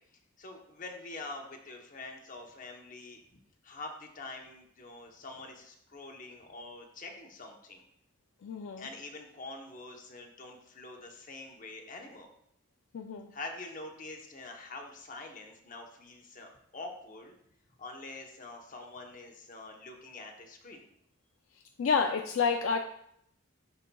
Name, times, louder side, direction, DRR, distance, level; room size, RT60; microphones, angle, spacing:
voice 1, 0.4-7.8 8.8-12.3 13.3-17.3 17.8-20.9, left 2 dB, 40° left, 2 dB, 0.9 m, -45 dB
voice 2, 8.4-8.9 12.9-13.3 21.8-22.8, left 5 dB, 80° left, 4 dB, 0.4 m, -29 dB
11.5 x 4.0 x 2.3 m, 0.72 s
head